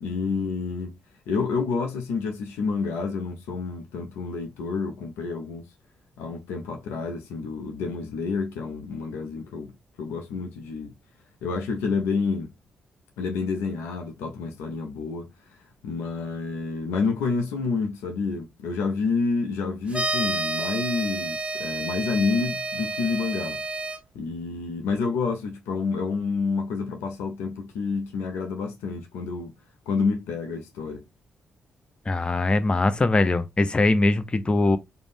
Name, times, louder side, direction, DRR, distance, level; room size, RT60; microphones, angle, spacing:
voice 1, 0.0-1.0 1.3-5.6 6.2-9.7 10.0-10.9 11.4-12.5 13.2-15.6 15.8-23.6 24.1-29.5 29.9-31.0, left 4 dB, 85° left, 0.4 m, -29 dB
sound 1, 19.9-24.0, right 2 dB, 30° right, 0.5 m, -30 dB
voice 2, 32.1-34.8, left 2 dB, 25° left, 0.4 m, -21 dB
2.5 x 2.1 x 3.3 m
supercardioid pair, 45°, 4 cm